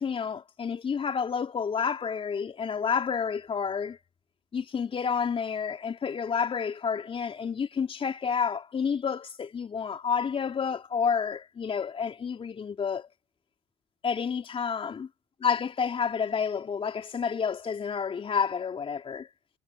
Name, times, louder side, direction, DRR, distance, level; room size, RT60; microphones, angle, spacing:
voice 1, 0.0-4.0 4.5-13.1 14.0-15.1 15.4-19.3, left 6 dB, 40° left, 3.3 m, -29 dB
hypercardioid pair, 55°, 14 cm